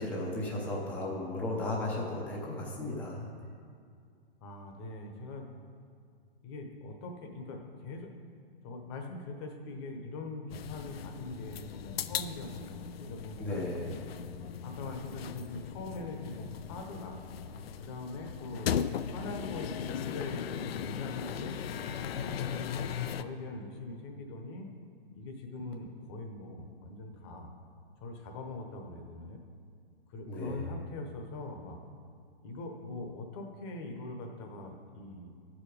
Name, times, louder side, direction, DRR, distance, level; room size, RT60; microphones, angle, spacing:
voice 1, 0.0-3.3 13.4-13.9 30.3-30.7, left 1 dB, 5° left, -4 dB, 0.6 m, -35 dB
voice 2, 4.4-5.5 6.4-8.1 8.6-13.6 14.4-18.7 19.1-21.6 22.1-22.9 23.2-24.7 25.1-27.5 28.0-29.4 30.1-31.8 32.4-35.3, left 2 dB, 25° left, 3 dB, 0.9 m, -42 dB
sound 1, 10.5-23.2, left 8 dB, 75° left, 0.5 m, -38 dB
12.0 x 5.0 x 5.2 m, 2.3 s
hypercardioid pair, 155°, 30 cm